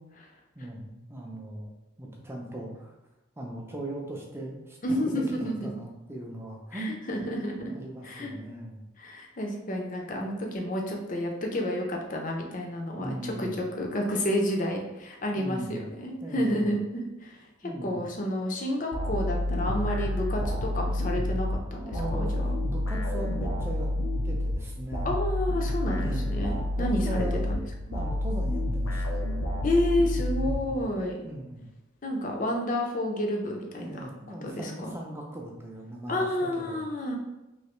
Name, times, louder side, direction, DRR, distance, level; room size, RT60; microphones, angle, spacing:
voice 1, 0.6-1.7 2.0-2.9 3.4-4.8 5.0-6.9 7.6-8.8 12.9-13.5 15.4-15.8 16.2-16.7 17.6-18.0 21.8-22.4 22.6-23.9 24.2-25.1 26.0-26.3 26.8-27.5 27.9-29.2 30.2-30.9 31.2-31.6 33.8-36.3 36.6-36.8, right 1 dB, 10° right, -1 dB, 0.4 m, -38 dB
voice 2, 4.8-5.7 6.7-7.7 8.0-8.3 9.0-17.5 17.8-22.5 25.0-27.6 29.6-31.3 32.0-34.0 34.4-34.9 36.1-37.2, left 1 dB, 40° left, 1 dB, 0.5 m, -30 dB
sound 1, 18.9-31.1, left 1 dB, 85° left, 0.6 m, -29 dB
3.1 x 2.8 x 3.0 m, 1.0 s
head